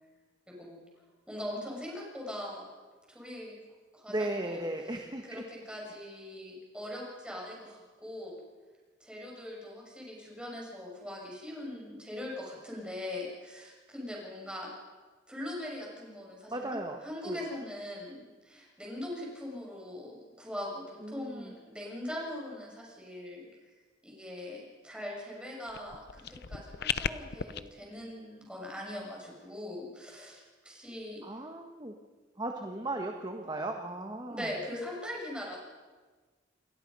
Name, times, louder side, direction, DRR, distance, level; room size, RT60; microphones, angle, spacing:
voice 1, 1.3-2.7 3.1-3.6 3.9-8.4 9.0-14.7 15.3-23.5 24.0-31.2 34.3-35.6, left 1 dB, 5° right, -2 dB, 6.9 m, -41 dB
voice 2, 4.1-5.4 16.5-17.0 17.2-17.4 21.0-21.5 31.2-31.9 32.4-34.5, right 1 dB, 25° right, 3 dB, 1.4 m, -36 dB
sound 1, 25.7-27.6, left 8 dB, 60° left, 0.7 m, -35 dB
28.5 x 21.5 x 5.5 m, 1.4 s
head